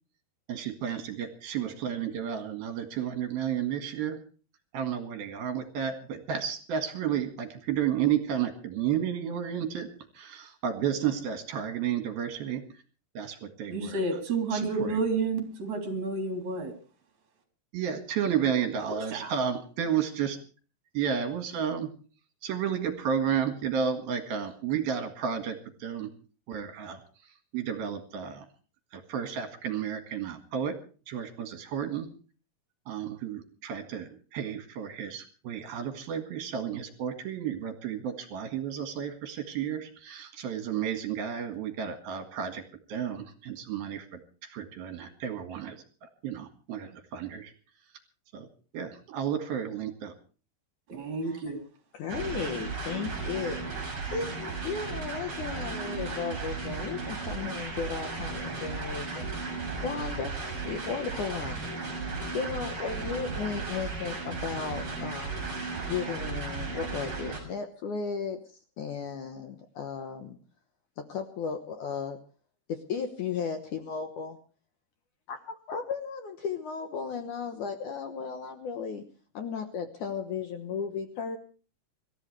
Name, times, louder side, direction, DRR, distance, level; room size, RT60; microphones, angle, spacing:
voice 1, 0.5-4.2 4.7-12.6 13.1-14.0 14.5-15.0 17.7-20.4 20.9-21.9 22.4-26.1 26.5-27.0 27.5-28.4 28.9-30.8 31.1-32.1 32.9-42.6 42.9-45.8 46.0-47.5 48.3-48.5 48.7-50.1, right 8 dB, 70° right, 6 dB, 3.5 m, -32 dB
voice 2, 13.7-16.7 18.9-19.3 50.9-51.6, right 3 dB, 45° right, 4 dB, 4.6 m, -30 dB
voice 3, 51.9-54.3 54.6-59.3 59.8-60.4 60.6-61.7 62.3-65.4 65.9-68.4 68.8-70.4 71.0-72.2 72.7-74.4 75.3-75.4 75.7-79.0 79.3-81.4, left 6 dB, 65° left, 7 dB, 2.2 m, -35 dB
sound 1, 52.1-67.4, right 4 dB, 30° right, 6.4 m, -35 dB
26.5 x 14.0 x 3.3 m, 0.38 s
omnidirectional pair, 4.7 m